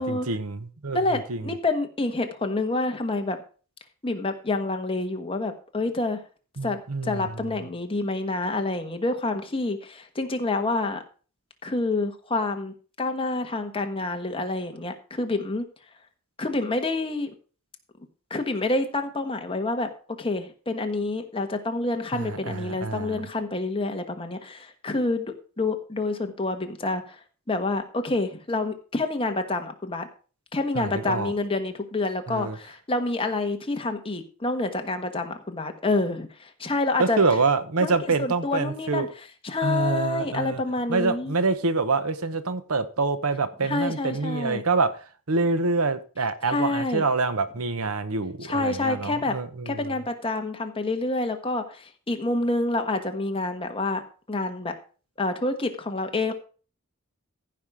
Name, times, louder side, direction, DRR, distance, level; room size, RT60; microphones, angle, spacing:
voice 1, 0.0-1.4 6.6-7.3 22.1-23.2 30.7-31.3 32.3-32.6 37.0-39.1 39.6-40.6 40.9-44.9 45.3-49.9, right 3 dB, 80° right, 1.0 m, -26 dB
voice 2, 0.9-3.4 4.0-6.2 6.6-11.0 11.6-15.6 16.4-17.3 18.3-19.9 20.2-27.2 27.5-30.1 30.5-37.2 37.8-37.9 38.2-41.3 43.6-44.6 46.4-47.0 48.4-49.3 49.6-54.0 54.3-54.7 55.2-56.3, left 2 dB, 25° left, 1.4 m, -28 dB
15.0 x 5.7 x 4.9 m
head